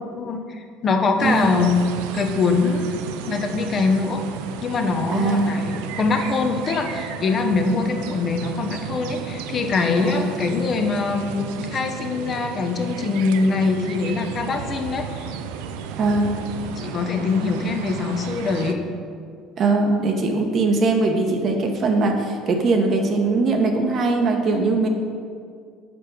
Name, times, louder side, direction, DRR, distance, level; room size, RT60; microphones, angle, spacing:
voice 1, 0.2-1.8 2.1-4.2 4.6-15.3 16.6-18.8, left 4 dB, 40° left, 4 dB, 0.7 m, -23 dB
voice 2, 1.2-1.5 5.1-5.5 10.0-10.3 16.0-16.4 19.6-24.9, right 3 dB, 50° right, 3 dB, 0.9 m, -21 dB
sound 1, 1.2-18.7, right 7 dB, 80° right, 0.4 m, -33 dB
5.3 x 4.4 x 6.1 m, 2.2 s
supercardioid pair, 85°, 0 cm